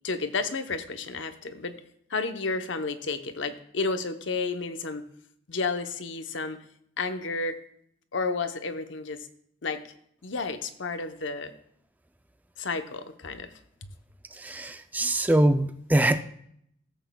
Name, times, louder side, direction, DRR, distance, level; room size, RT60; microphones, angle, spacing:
voice 1, 0.0-1.8 2.1-5.1 5.5-6.6 7.0-7.6 8.1-9.3 9.6-9.8 10.2-11.5 12.6-13.5, left 4 dB, 75° left, 8 dB, 0.8 m, -31 dB
voice 2, 14.3-16.2, right 1 dB, 10° right, 9 dB, 0.3 m, -23 dB
16.5 x 8.1 x 2.2 m, 0.69 s
head